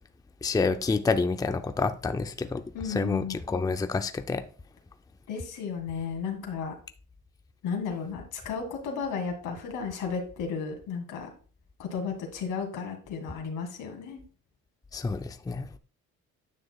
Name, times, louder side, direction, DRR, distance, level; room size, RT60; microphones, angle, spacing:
voice 1, 0.4-2.6 2.9-4.4 14.9-15.7, left 4 dB, 10° left, 0.5 m, -28 dB
voice 2, 2.7-3.4 5.3-6.7 7.6-11.3 11.8-14.2, left 6 dB, 85° left, 2.1 m, -34 dB
9.8 x 6.2 x 2.3 m
cardioid pair, 90°, 30 cm